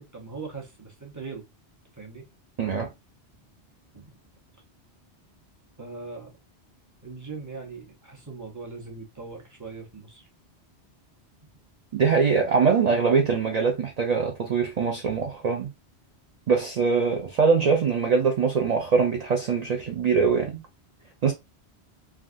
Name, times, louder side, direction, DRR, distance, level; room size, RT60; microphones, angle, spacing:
voice 1, 0.0-1.4 2.0-2.3 3.9-4.1 5.8-6.3 7.0-10.3, right 4 dB, 20° right, 0.7 m, -40 dB
voice 2, 2.6-2.9 12.0-15.7 16.5-20.6 21.2-21.3, right 5 dB, 50° right, 0.5 m, -23 dB
3.4 x 2.3 x 2.5 m
omnidirectional pair, 1.1 m